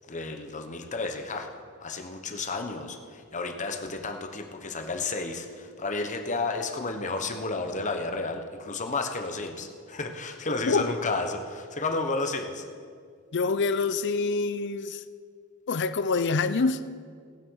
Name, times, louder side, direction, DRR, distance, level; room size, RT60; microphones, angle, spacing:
voice 1, 0.1-1.5 1.8-12.7, left 3 dB, 35° left, 1.1 m, -32 dB
voice 2, 13.3-15.0 15.7-16.8, left 4 dB, 55° left, 0.6 m, -26 dB
18.0 x 7.6 x 6.4 m
head